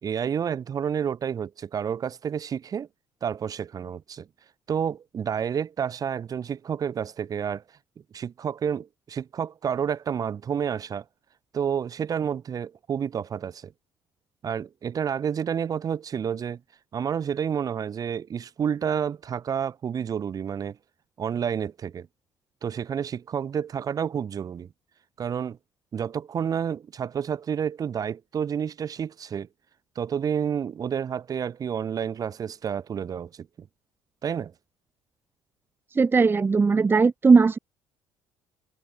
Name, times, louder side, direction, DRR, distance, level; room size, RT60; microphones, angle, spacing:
voice 1, 0.0-2.9 3.2-4.3 4.7-7.6 8.1-11.0 11.5-13.7 14.4-16.6 16.9-20.8 21.2-22.1 22.6-24.7 25.2-25.6 25.9-29.5 29.9-33.7 34.2-34.5, right 8 dB, 40° right, 1.2 m, -29 dB
voice 2, 36.0-37.6, right 4 dB, 25° right, 0.6 m, -18 dB
hypercardioid pair, 60°, 9 cm